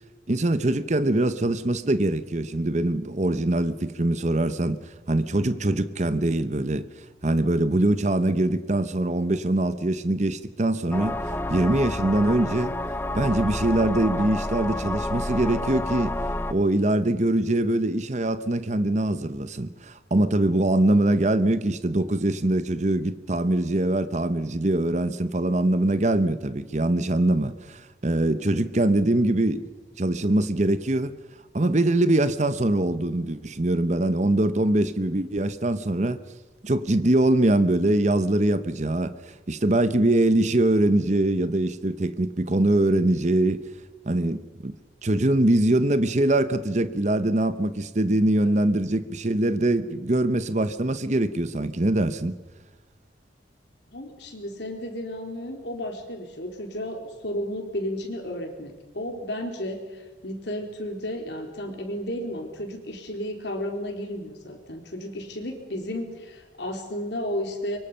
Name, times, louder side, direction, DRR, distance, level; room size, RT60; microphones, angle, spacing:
voice 1, 0.3-6.9 7.2-12.7 13.1-16.2 16.5-29.7 30.0-31.1 31.5-36.2 36.6-43.6 44.1-44.8 45.0-52.4, right 1 dB, 40° right, 0.9 m, -23 dB
sound 1, 10.9-16.5, left 1 dB, 10° left, 0.6 m, -29 dB
voice 2, 53.9-67.8, left 1 dB, 70° left, 4.1 m, -33 dB
24.0 x 23.5 x 5.7 m
head